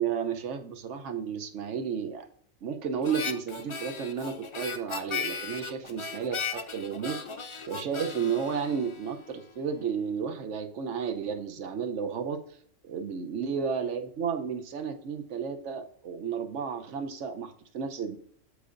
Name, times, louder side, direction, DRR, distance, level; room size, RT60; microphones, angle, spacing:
voice 1, 0.0-2.3 2.6-7.2 7.7-12.4 12.8-18.2, right 6 dB, 70° right, 7 dB, 1.1 m, -32 dB
Harmonica, 3.0-9.5, left 5 dB, 40° left, 0.4 m, -37 dB
13.0 x 5.1 x 2.5 m, 0.62 s
omnidirectional pair, 1.4 m